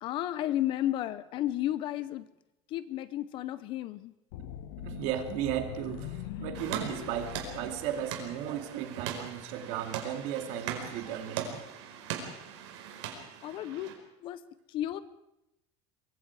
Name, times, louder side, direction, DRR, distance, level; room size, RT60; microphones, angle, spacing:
voice 1, 0.0-2.3 2.7-4.1 13.4-14.4 14.7-15.0, left 13 dB, 35° left, 15 dB, 0.7 m, -33 dB
sound 1, 4.3-8.6, left 11 dB, 75° left, 1.4 m, -42 dB
voice 2, 4.8-11.6 12.1-12.2, right 10 dB, 50° right, 5 dB, 2.7 m, -35 dB
sound 2, 6.5-13.9, right 8 dB, 90° right, 4.8 m, -40 dB
23.5 x 23.0 x 4.8 m, 0.89 s
cardioid pair, 175°, 14 cm